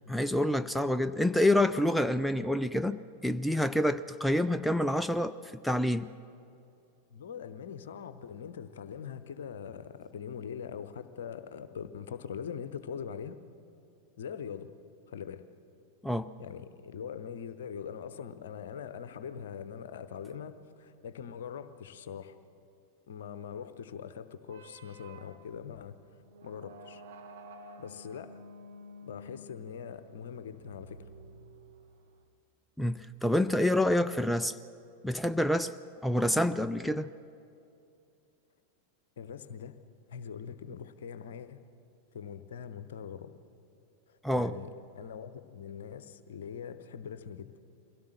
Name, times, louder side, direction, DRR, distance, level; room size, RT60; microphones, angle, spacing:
voice 1, 0.1-3.0 3.2-5.3 5.6-6.1 16.0-16.3 32.8-34.6 35.0-35.7 36.0-37.1 44.2-44.5, left 1 dB, ahead, 11 dB, 0.4 m, -27 dB
voice 2, 7.1-13.4 14.2-14.7 15.1-15.4 16.4-22.4 23.1-26.0 26.4-27.0 27.8-28.4 29.0-31.0 39.2-39.8 40.1-41.6 42.1-43.3 44.3-47.5, left 7 dB, 60° left, 12 dB, 0.9 m, -42 dB
sound 1, 24.4-32.2, right 1 dB, 55° right, 1.5 m, -51 dB
23.5 x 16.5 x 6.7 m, 2.6 s
figure-of-eight pair, 90°, 0 cm